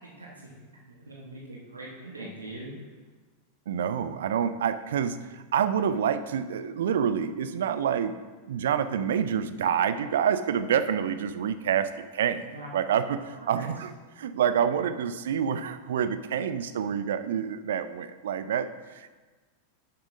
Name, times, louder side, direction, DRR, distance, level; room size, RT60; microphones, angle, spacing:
voice 1, 0.0-2.7 12.5-12.7 13.6-13.7, right 2 dB, 80° right, -3 dB, 1.2 m, -42 dB
voice 2, 3.7-8.2 8.5-13.9 14.2-19.2, right 8 dB, 60° right, 11 dB, 0.4 m, -27 dB
11.5 x 6.9 x 2.6 m, 1.3 s
figure-of-eight pair, 90°, 0 cm